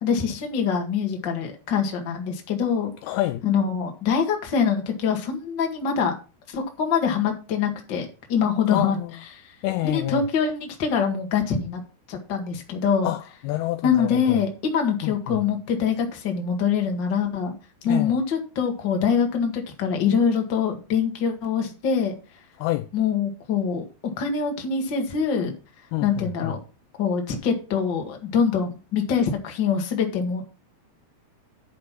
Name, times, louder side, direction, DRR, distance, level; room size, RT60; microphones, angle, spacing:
voice 1, 0.0-2.9 3.4-6.1 6.5-9.0 9.3-9.5 9.8-11.8 12.1-13.1 13.8-17.5 17.8-22.1 22.9-23.8 24.2-25.5 26.0-26.6 27.0-30.4, left 6 dB, 45° left, 1.4 m, -24 dB
voice 2, 3.1-3.4 8.7-9.1 9.6-10.2 13.0-14.4 15.0-15.4 17.8-18.1 22.6-22.9 25.9-26.5, left 16 dB, 90° left, 2.2 m, -27 dB
10.5 x 5.3 x 5.9 m
omnidirectional pair, 5.1 m